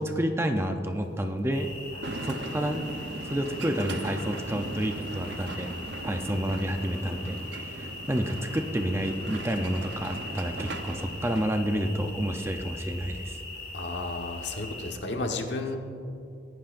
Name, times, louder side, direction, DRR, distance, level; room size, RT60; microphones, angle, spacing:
voice 1, 0.0-1.7 2.2-2.9 3.2-5.7 6.0-13.4, equal, 15° right, 5 dB, 0.6 m, -29 dB
sound 1, 1.5-14.9, left 2 dB, 45° left, 2.8 m, -41 dB
sound 2, 2.0-11.5, right 2 dB, 70° right, 0.9 m, -39 dB
voice 2, 13.7-15.8, left 2 dB, 70° left, 3 dB, 1.3 m, -32 dB
23.0 x 11.5 x 2.6 m, 2.7 s
head